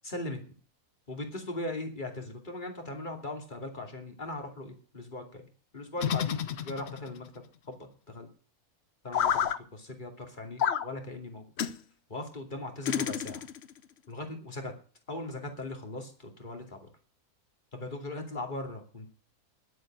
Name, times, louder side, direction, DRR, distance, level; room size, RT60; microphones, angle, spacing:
voice 1, 0.0-0.4 1.1-5.4 5.7-7.3 7.7-7.8 8.1-8.3 9.0-11.4 12.1-13.4 14.1-14.7 15.1-16.8 17.7-19.1, left 2 dB, 30° left, 3 dB, 2.8 m, -39 dB
sound 1, 6.0-7.2 9.1-9.6 10.6-10.9 11.6-11.8 12.8-13.7, left 9 dB, 55° left, 0.8 m, -29 dB
10.5 x 8.0 x 8.8 m, 0.40 s
omnidirectional pair, 1.6 m